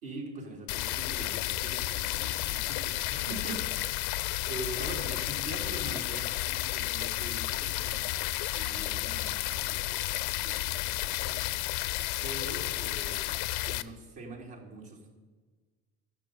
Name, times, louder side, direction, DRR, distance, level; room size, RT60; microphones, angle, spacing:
voice 1, 0.0-3.7 4.5-11.4 12.2-13.4 13.6-15.1, right 2 dB, 60° right, -2 dB, 3.7 m, -43 dB
sound 1, 0.7-13.8, left 17 dB, 70° left, 0.7 m, -32 dB
12.5 x 7.2 x 9.3 m, 1.4 s
figure-of-eight pair, 50°, 46 cm